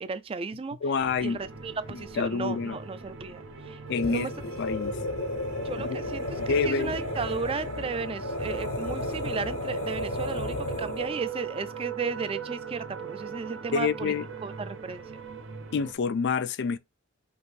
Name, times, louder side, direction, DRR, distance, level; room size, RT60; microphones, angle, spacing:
voice 1, 0.0-0.8 1.2-3.8 4.1-4.3 5.6-14.1 14.4-15.0, right 4 dB, 25° right, 0.4 m, -34 dB
voice 2, 0.8-1.4 2.2-2.8 3.9-4.3 4.6-5.0 5.8-5.9 6.4-7.0 13.7-14.3 15.7-16.8, left 5 dB, 55° left, 0.4 m, -27 dB
sound 1, 1.0-15.9, right 5 dB, 60° right, 0.6 m, -40 dB
sound 2, 3.9-11.2, left 1 dB, 75° left, 0.8 m, -33 dB
5.2 x 2.6 x 3.2 m
head